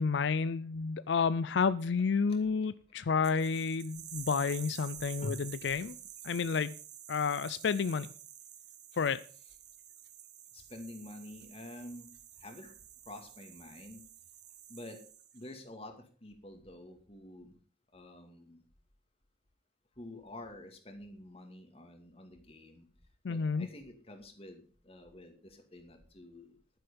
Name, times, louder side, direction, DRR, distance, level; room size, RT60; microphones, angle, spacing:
voice 1, 0.0-5.9 6.2-6.8 7.1-8.1 9.0-9.2 23.2-23.7, left 5 dB, 80° left, 16 dB, 0.4 m, -30 dB
sound 1, 3.2-15.5, right 11 dB, 65° right, 1.6 m, -50 dB
voice 2, 10.5-12.1 12.4-12.8 13.1-14.0 14.7-15.0 15.3-17.6 17.9-18.6 20.0-22.9 23.3-26.6, left 1 dB, 35° left, 6 dB, 2.3 m, -48 dB
11.0 x 10.5 x 5.3 m, 0.40 s
head